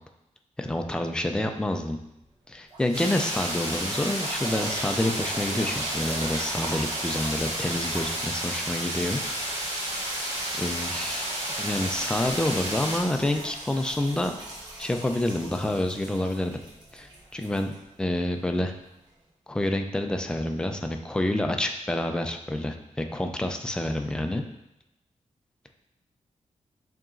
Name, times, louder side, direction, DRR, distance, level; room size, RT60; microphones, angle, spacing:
voice 1, 0.6-2.0 2.5-9.2 10.6-11.3 11.6-14.3 14.8-16.6 16.9-18.7 19.5-24.4, left 1 dB, 5° left, 5 dB, 0.3 m, -28 dB
sound 1, 2.2-2.3 2.7-18.4 19.1-19.2, right 1 dB, 35° right, 1.2 m, -40 dB
sound 2, 2.9-13.0, right 1 dB, 50° right, 1.7 m, -31 dB
7.1 x 2.9 x 2.5 m, 0.87 s
wide cardioid pair, 180°, 13 cm